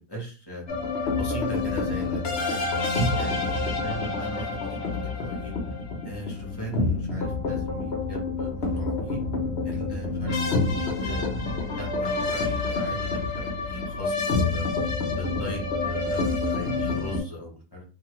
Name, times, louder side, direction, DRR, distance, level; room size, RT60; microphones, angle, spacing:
voice 1, 0.1-0.6 1.2-2.7 3.1-4.8 5.0-5.5 6.0-9.2 9.6-11.2 11.7-14.7 15.1-17.8, equal, 20° left, -3 dB, 0.6 m, -39 dB
sound 1, 0.7-17.2, left 3 dB, 55° left, 0.7 m, -28 dB
3.1 x 2.5 x 3.0 m, 0.35 s
omnidirectional pair, 2.0 m